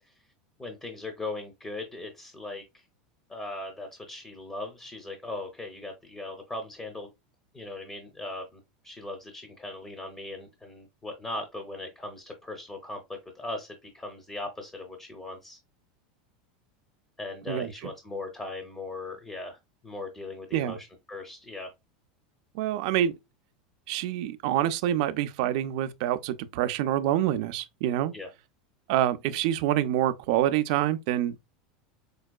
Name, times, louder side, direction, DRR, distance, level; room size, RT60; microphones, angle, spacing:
voice 1, 0.6-2.9 3.3-7.1 7.5-13.0 13.3-15.6 17.2-21.7 28.1-28.3, left 2 dB, 15° left, 0.6 m, -39 dB
voice 2, 22.6-23.1 23.9-28.1 28.9-31.4, right 12 dB, 65° right, 0.3 m, -26 dB
4.5 x 2.1 x 2.3 m
supercardioid pair, 125°, 4 cm